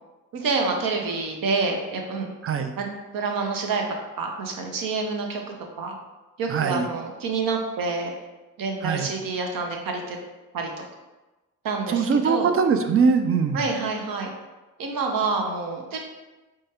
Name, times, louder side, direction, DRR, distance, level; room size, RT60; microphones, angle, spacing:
voice 1, 0.3-2.3 2.8-2.9 3.1-3.8 4.2-5.4 5.8-6.0 6.4-8.1 8.6-10.2 10.5-10.7 11.6-12.5 13.5-14.3 14.8-16.0, right 4 dB, 65° right, 2 dB, 0.8 m, -27 dB
voice 2, 6.5-6.9 8.8-9.1 11.9-13.6, right 5 dB, 40° right, 7 dB, 0.4 m, -22 dB
4.5 x 2.4 x 2.9 m, 1.1 s
supercardioid pair, 55°, 37 cm